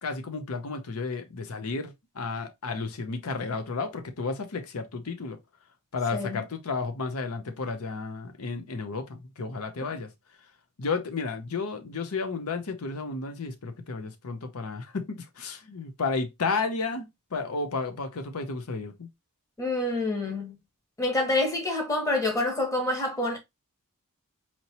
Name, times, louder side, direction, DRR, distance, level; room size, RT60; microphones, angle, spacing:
voice 1, 0.0-5.4 5.9-10.1 10.8-19.1, left 4 dB, 75° left, 0.7 m, -32 dB
voice 2, 19.6-20.5 21.0-23.4, left 2 dB, 15° left, 1.2 m, -27 dB
4.3 x 2.9 x 2.8 m
head